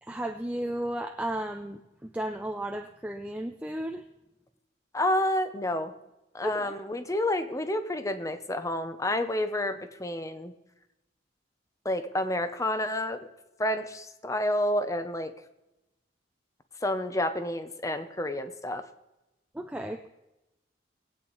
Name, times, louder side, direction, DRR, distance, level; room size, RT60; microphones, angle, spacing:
voice 1, 0.0-4.0 6.4-6.8 19.5-20.1, right 1 dB, 5° right, 5 dB, 0.4 m, -34 dB
voice 2, 4.9-5.9 6.3-10.5 11.8-13.2 13.6-15.3 16.8-18.8, left 1 dB, 15° left, 9 dB, 0.8 m, -29 dB
19.0 x 8.8 x 4.0 m, 0.97 s
head